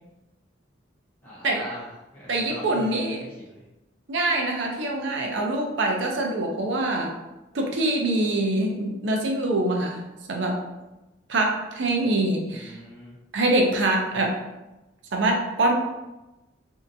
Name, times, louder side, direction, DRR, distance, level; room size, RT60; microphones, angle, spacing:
voice 1, 1.2-2.9 3.2-3.7 12.5-13.2, equal, 10° left, -9 dB, 1.0 m, -42 dB
voice 2, 2.3-3.2 4.1-7.1 7.5-10.0 10.3-10.6 11.3-12.8 13.3-14.4 15.1-15.7, right 2 dB, 65° right, 1 dB, 0.6 m, -24 dB
3.3 x 2.7 x 2.7 m, 1.0 s
head